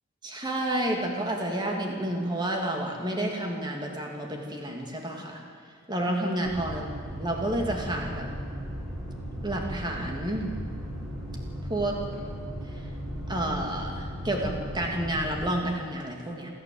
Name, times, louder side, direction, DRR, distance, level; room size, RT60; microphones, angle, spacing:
voice 1, 0.2-5.4 5.9-6.9 7.1-8.3 9.4-10.5 11.7-12.0 13.3-16.5, right 1 dB, 20° right, 1 dB, 2.9 m, -30 dB
sound 1, 6.4-15.5, equal, ahead, 7.2 m, -36 dB
28.0 x 13.5 x 8.1 m, 2.3 s
head